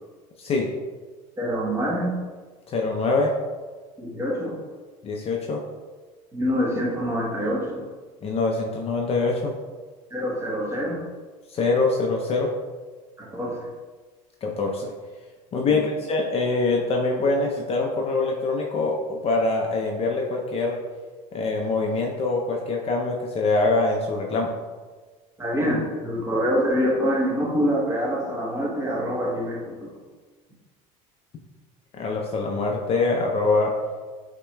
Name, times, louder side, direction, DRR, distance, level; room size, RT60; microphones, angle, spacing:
voice 1, 1.4-2.1 4.0-4.6 6.3-7.8 10.1-11.0 13.2-13.7 15.6-15.8 25.4-29.9, equal, 15° right, -3 dB, 1.0 m, -25 dB
voice 2, 2.7-3.3 5.0-5.6 8.2-9.5 11.5-12.5 14.4-14.9 15.5-20.8 21.3-24.5 31.9-33.7, left 3 dB, 35° left, 0 dB, 0.5 m, -24 dB
5.3 x 2.9 x 2.2 m, 1.4 s
supercardioid pair, 100°, 17 cm